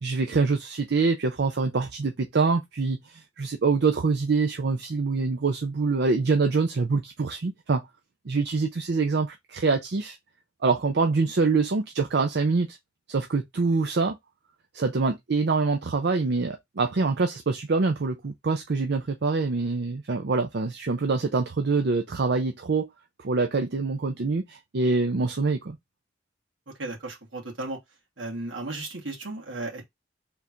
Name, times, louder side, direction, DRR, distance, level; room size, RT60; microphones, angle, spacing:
voice 1, 0.0-7.8 8.3-10.2 10.6-12.8 13.1-14.2 14.7-22.9 23.2-25.8, right 4 dB, 60° right, 0.6 m, -25 dB
voice 2, 26.8-27.8 28.2-29.8, right 2 dB, 75° right, 1.9 m, -35 dB
3.6 x 2.5 x 4.4 m
head